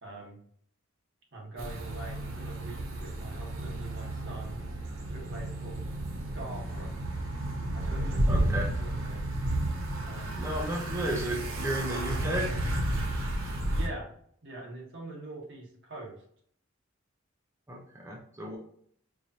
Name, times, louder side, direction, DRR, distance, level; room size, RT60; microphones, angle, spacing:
voice 1, 0.0-0.4 1.3-4.6 5.1-6.0 6.3-6.9 7.7-9.2 10.0-10.4 13.7-14.1 14.4-16.1, right 2 dB, 65° right, -2 dB, 1.5 m, -43 dB
sound 1, 1.6-13.9, right 1 dB, 80° right, 0.8 m, -32 dB
voice 2, 8.3-8.6 10.3-12.5 17.7-18.6, right 1 dB, 15° right, -2 dB, 0.6 m, -33 dB
4.7 x 2.7 x 2.8 m, 0.63 s
head